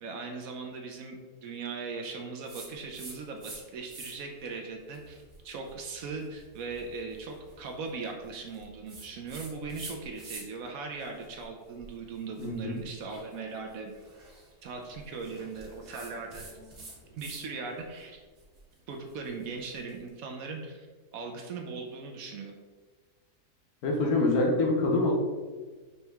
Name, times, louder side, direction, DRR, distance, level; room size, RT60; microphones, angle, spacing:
voice 1, 0.0-5.2 5.4-13.9 14.6-16.5 17.1-18.2 18.9-20.9 21.1-22.5, right 4 dB, 70° right, 2 dB, 0.9 m, -39 dB
sound 1, 2.5-3.6 3.9-4.4 4.9-10.7 11.0-17.5 17.8-20.0, right 3 dB, 40° right, 1.2 m, -48 dB
voice 2, 12.4-12.8 23.8-25.1, left 2 dB, 70° left, 0 dB, 1.3 m, -25 dB
5.3 x 2.9 x 3.5 m, 1.4 s
omnidirectional pair, 1.7 m